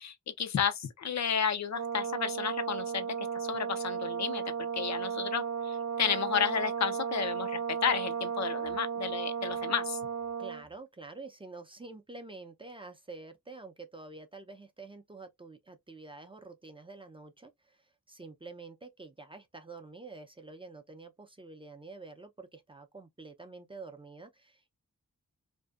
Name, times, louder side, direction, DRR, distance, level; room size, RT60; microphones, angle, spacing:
voice 1, 0.0-10.0, left 7 dB, 60° left, 0.5 m, -32 dB
Brass instrument, 1.7-10.6, right 7 dB, 75° right, 0.7 m, -34 dB
voice 2, 10.4-24.7, right 3 dB, 15° right, 0.4 m, -48 dB
2.6 x 2.1 x 2.3 m
wide cardioid pair, 100°, 30 cm